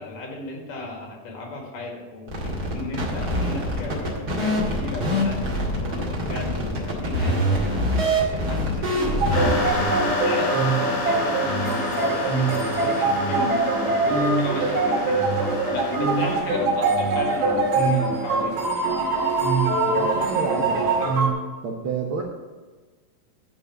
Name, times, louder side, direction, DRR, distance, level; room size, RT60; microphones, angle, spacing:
voice 1, 0.0-2.3 2.6-7.8 8.3-15.2 15.7-18.5, left 3 dB, 70° left, 0 dB, 3.5 m, -35 dB
sound 1, 2.3-9.8, equal, 30° right, 2.2 m, -24 dB
sound 2, 9.2-21.3, right 3 dB, 55° right, 3.3 m, -23 dB
sound 3, 9.3-16.4, left 3 dB, 85° left, 4.2 m, -30 dB
voice 2, 16.5-16.8 19.8-21.1 21.6-22.2, right 5 dB, 85° right, 0 dB, 1.1 m, -30 dB
12.0 x 5.4 x 6.7 m, 1.3 s
omnidirectional pair, 4.0 m